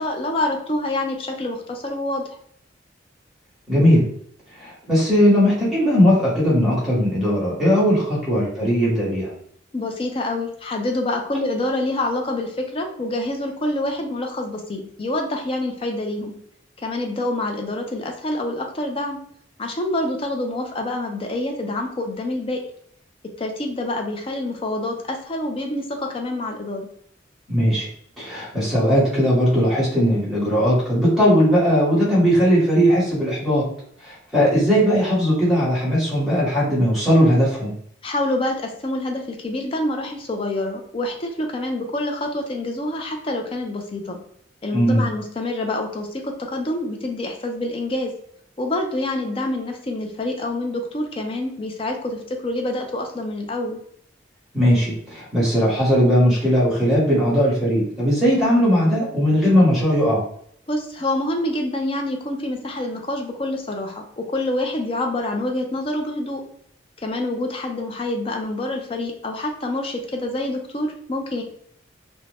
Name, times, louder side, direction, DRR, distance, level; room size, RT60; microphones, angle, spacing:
voice 1, 0.0-2.2 9.7-16.3 16.8-19.2 19.6-22.6 23.4-26.9 38.0-44.2 44.6-48.1 48.6-53.8 60.7-66.4 67.0-71.4, left 1 dB, 30° left, 3 dB, 0.4 m, -26 dB
voice 2, 3.7-4.0 4.5-9.3 27.5-27.9 28.2-33.6 34.0-37.7 44.7-45.1 54.5-60.2, equal, ahead, -8 dB, 1.2 m, -18 dB
2.5 x 2.1 x 3.2 m, 0.68 s
head